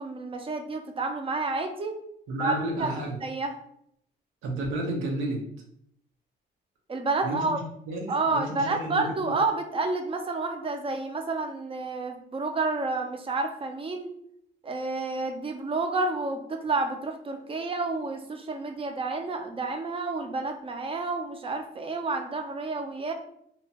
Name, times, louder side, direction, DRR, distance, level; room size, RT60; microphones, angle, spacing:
voice 1, 0.0-2.0 2.4-2.9 3.2-3.5 6.9-7.6 8.1-14.1 14.6-23.1, right 3 dB, 30° right, 5 dB, 0.5 m, -30 dB
voice 2, 2.3-3.2 4.4-5.4 7.2-7.6 7.9-9.0, right 1 dB, 85° right, 0 dB, 0.8 m, -31 dB
2.8 x 2.2 x 2.8 m, 0.71 s
cardioid pair, 90°, 20 cm